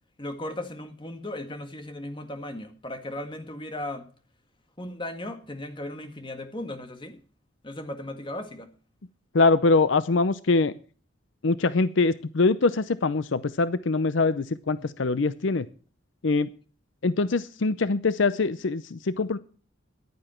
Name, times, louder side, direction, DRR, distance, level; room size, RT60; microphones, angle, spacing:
voice 1, 0.2-4.1 4.8-7.2 7.6-8.7 14.8-14.9, left 1 dB, 25° left, 7 dB, 1.8 m, -36 dB
voice 2, 9.3-10.7 11.4-15.7 16.2-16.5 17.0-19.4, left 3 dB, 70° left, 15 dB, 0.6 m, -23 dB
15.0 x 11.0 x 4.4 m, 0.40 s
head